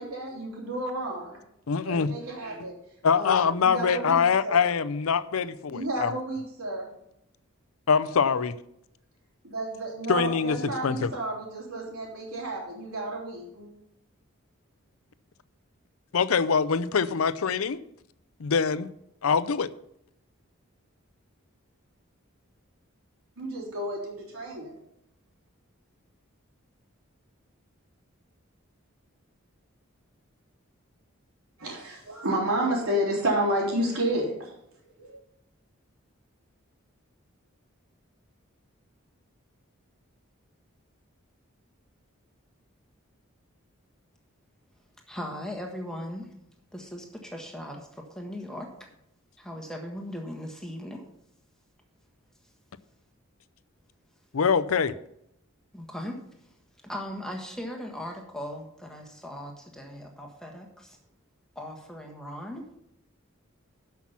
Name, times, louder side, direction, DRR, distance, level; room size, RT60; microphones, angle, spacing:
voice 1, 0.0-1.4 1.8-2.7 3.1-4.6 5.7-6.9 9.4-13.7 23.4-24.7 31.6-34.5 35.0-35.2, right 1 dB, 90° right, -2 dB, 3.7 m, -31 dB
voice 2, 1.7-2.1 3.0-6.1 7.9-8.5 10.1-11.1 16.1-17.8 18.4-18.9 19.2-19.7 54.3-54.9, left 6 dB, 85° left, 14 dB, 0.6 m, -24 dB
voice 3, 45.1-46.3 46.7-48.9 49.4-51.1 55.7-56.2 56.8-61.0 61.5-62.6, equal, 5° left, 1 dB, 1.4 m, -38 dB
12.0 x 5.9 x 5.8 m, 0.77 s
head